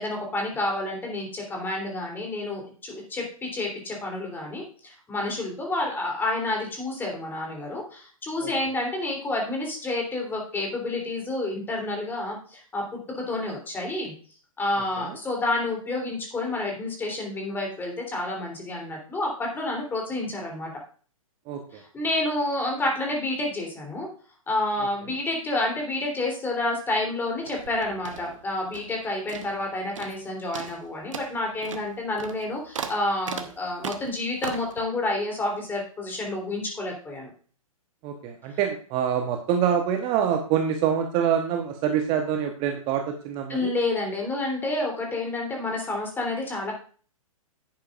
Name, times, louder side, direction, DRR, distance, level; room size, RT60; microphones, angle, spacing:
voice 1, 0.0-14.1 14.6-20.7 21.7-24.1 24.5-37.3 43.5-46.7, left 2 dB, 10° left, 0 dB, 3.2 m, -29 dB
voice 2, 21.5-21.8 38.0-43.7, right 8 dB, 30° right, 4 dB, 1.1 m, -26 dB
sound 1, 27.4-29.0 29.3-29.7 30.0-30.2 30.5-34.8, right 6 dB, 60° right, 1.2 m, -38 dB
10.5 x 9.7 x 2.5 m, 0.41 s
figure-of-eight pair, 115°, 18 cm